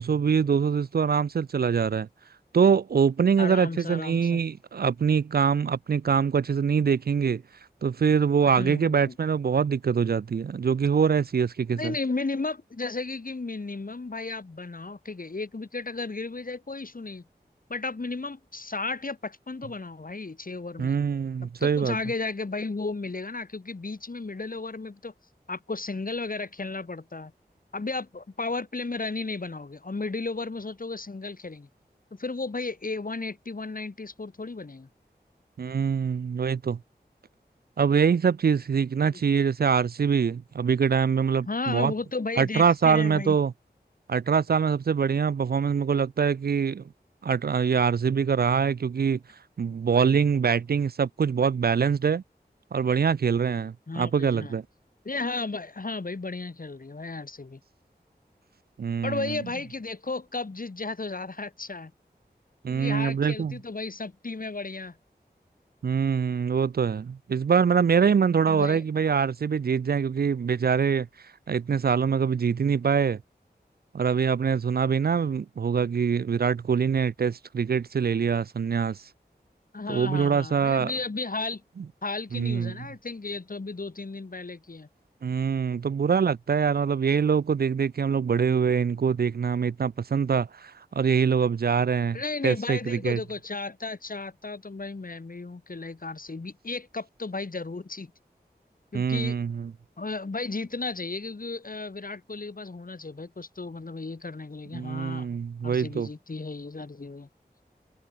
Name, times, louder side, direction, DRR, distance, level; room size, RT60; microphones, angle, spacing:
voice 1, 0.0-2.1 2.5-7.4 7.8-11.9 20.8-22.0 35.6-36.8 37.8-41.9 42.4-43.5 44.1-46.8 47.2-49.2 49.6-52.2 52.7-54.6 58.8-59.4 62.6-63.6 65.8-71.1 71.5-73.2 73.9-79.0 79.9-80.9 82.3-82.7 85.2-93.2 98.9-99.7 104.7-106.1, right 6 dB, 60° right, 0.4 m, -24 dB
voice 2, 3.4-4.4 8.6-9.1 11.7-17.2 17.7-21.0 21.6-25.1 25.5-27.3 27.7-31.7 32.2-34.9 39.0-39.2 41.5-43.3 53.9-54.5 55.0-57.6 59.0-61.9 62.7-65.0 68.4-68.8 79.7-81.6 82.0-84.9 92.1-98.1 98.9-99.4 100.0-105.3 105.6-107.3, left 3 dB, 55° left, 1.8 m, -34 dB
wide cardioid pair, 55°, 17 cm